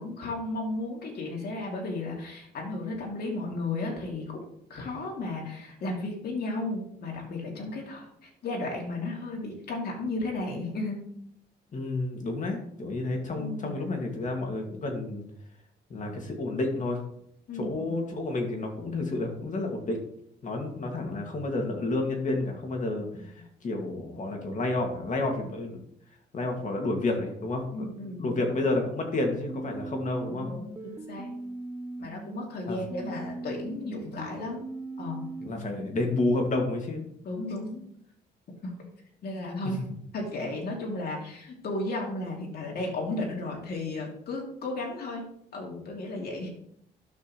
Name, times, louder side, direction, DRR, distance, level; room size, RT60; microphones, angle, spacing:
voice 1, 0.0-4.4 4.7-11.0 13.3-13.9 17.5-18.0 27.7-28.5 30.2-31.3 32.0-34.6 35.0-35.3 37.2-37.9 38.6-38.8 39.2-39.9 40.1-45.3 45.5-46.5, left 2 dB, 65° left, -1 dB, 2.8 m, -34 dB
voice 2, 11.7-15.2 15.9-17.0 17.6-20.0 20.4-23.3 23.6-25.8 26.3-27.9 28.2-30.5 32.7-32.8 35.4-37.1, left 2 dB, 45° left, 2 dB, 2.2 m, -30 dB
sound 1, 29.5-32.5 32.9-35.9, right 2 dB, 15° right, 0.6 m, -40 dB
12.5 x 6.1 x 3.2 m, 0.69 s
cardioid pair, 105°, 18 cm